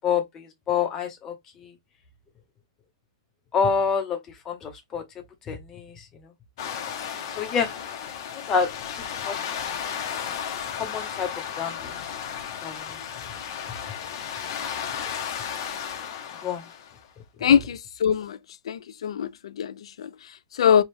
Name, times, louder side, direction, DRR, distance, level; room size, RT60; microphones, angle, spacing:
voice 1, 0.0-1.7 3.5-4.2 4.5-5.0 5.5-6.1 7.4-7.7 8.5-8.7 9.2-9.3 10.7-11.3 11.6-11.9 12.6-13.0 16.4-16.7, left 6 dB, 15° left, 0.8 m, -27 dB
sound 1, 6.6-17.1, left 8 dB, 45° left, 0.8 m, -34 dB
voice 2, 17.4-18.4 18.6-20.8, left 8 dB, 75° left, 0.4 m, -23 dB
3.4 x 2.3 x 4.3 m
hypercardioid pair, 165°, 3 cm